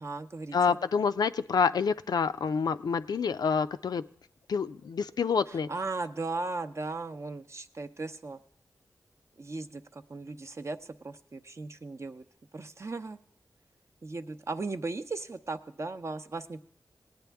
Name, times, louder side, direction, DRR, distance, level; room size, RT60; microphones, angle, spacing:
voice 1, 0.0-0.8 5.7-8.4 9.4-12.2 12.5-13.2 14.0-16.6, right 3 dB, 45° right, 9 dB, 0.6 m, -37 dB
voice 2, 0.5-4.0 4.5-5.7, left 6 dB, 75° left, 12 dB, 0.4 m, -27 dB
18.0 x 9.2 x 3.5 m, 0.63 s
cardioid pair, 55°, 7 cm